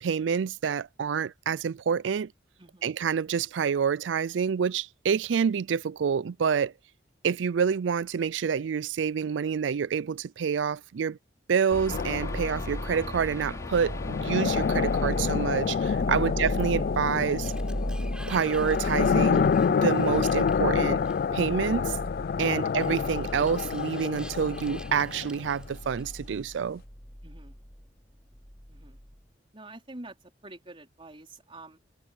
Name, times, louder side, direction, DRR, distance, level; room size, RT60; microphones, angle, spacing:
voice 1, 0.0-2.3 2.8-6.7 7.2-11.2 11.5-17.5 18.3-19.5 19.8-21.0 21.3-22.0 22.4-26.8, right 6 dB, 80° right, 0.4 m, -27 dB
voice 2, 2.6-2.9 16.2-16.3 22.5-22.8 27.2-27.5 28.7-29.0 29.5-30.2 30.4-31.8, right 2 dB, 30° right, 4.4 m, -47 dB
sound 1, 11.7-27.9 28.3-29.2, equal, 20° left, 3.7 m, -37 dB
sound 2, 11.9-25.7, left 6 dB, 50° left, 0.3 m, -28 dB
Sliding door, 16.9-21.5 22.6-26.3, right 1 dB, 5° right, 6.8 m, -50 dB
head